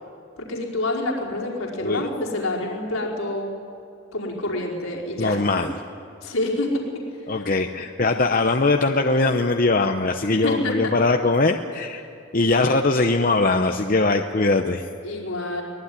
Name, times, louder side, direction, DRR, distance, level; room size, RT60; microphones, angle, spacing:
voice 1, 0.4-3.6 4.1-5.4 6.2-6.8 7.3-7.5 10.4-10.9 15.0-15.6, left 2 dB, 90° left, -2 dB, 5.0 m, -27 dB
voice 2, 5.2-5.7 7.3-12.1 12.3-14.8, left 3 dB, 40° left, 5 dB, 0.8 m, -21 dB
23.5 x 20.0 x 9.7 m, 2.7 s
head